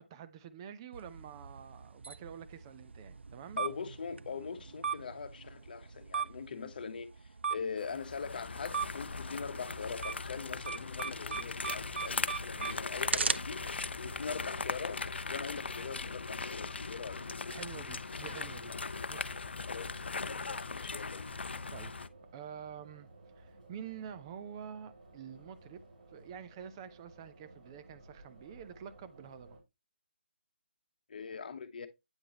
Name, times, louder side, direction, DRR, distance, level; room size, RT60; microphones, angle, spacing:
voice 1, 0.0-3.6 17.5-18.7 19.1-19.3 21.7-21.9 22.3-23.1 23.4-25.8 26.1-29.6, right 8 dB, 25° right, 0.6 m, -47 dB
sound 1, 0.9-14.9, right 5 dB, 85° right, 0.3 m, -40 dB
voice 2, 3.6-13.6 14.0-17.3 19.7-21.4 31.1-31.9, left 5 dB, 55° left, 1.0 m, -42 dB
sound 2, 7.8-22.1, left 4 dB, 75° left, 0.5 m, -39 dB
sound 3, 11.7-29.6, right 2 dB, 50° right, 2.9 m, -57 dB
8.8 x 3.8 x 2.9 m
figure-of-eight pair, 150°, 6 cm